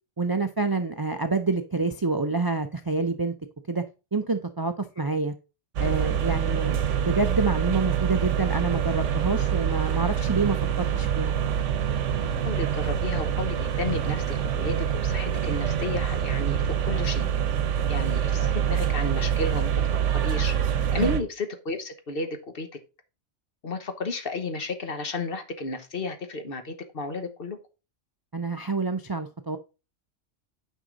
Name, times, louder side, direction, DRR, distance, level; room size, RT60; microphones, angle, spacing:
voice 1, 0.2-3.3 3.7-3.8 4.1-5.3 5.8-11.3 21.0-21.1 28.3-29.6, right 3 dB, 35° right, 8 dB, 0.3 m, -27 dB
sound 1, 5.8-21.2, right 9 dB, 90° right, 1.1 m, -26 dB
voice 2, 12.4-17.3 17.9-19.7 20.1-20.5 20.9-22.7 23.6-27.6, left 3 dB, 55° left, 8 dB, 1.2 m, -32 dB
9.2 x 5.4 x 3.8 m, 0.31 s
omnidirectional pair, 1.2 m